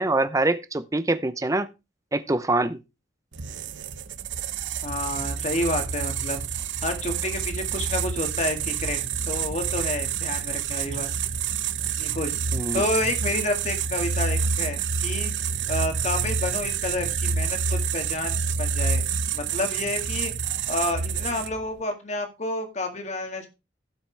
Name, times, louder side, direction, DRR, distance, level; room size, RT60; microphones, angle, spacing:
voice 1, 0.0-1.7 2.1-2.8 12.5-12.8, right 2 dB, 15° right, 0.7 m, -24 dB
sound 1, 3.3-21.7, right 6 dB, 75° right, 0.8 m, -28 dB
voice 2, 4.8-6.4 6.8-9.0 9.3-11.1 12.0-12.3 12.7-15.3 15.7-19.0 19.3-20.3 20.7-23.5, left 2 dB, 40° left, 2.1 m, -29 dB
16.5 x 5.9 x 3.4 m
head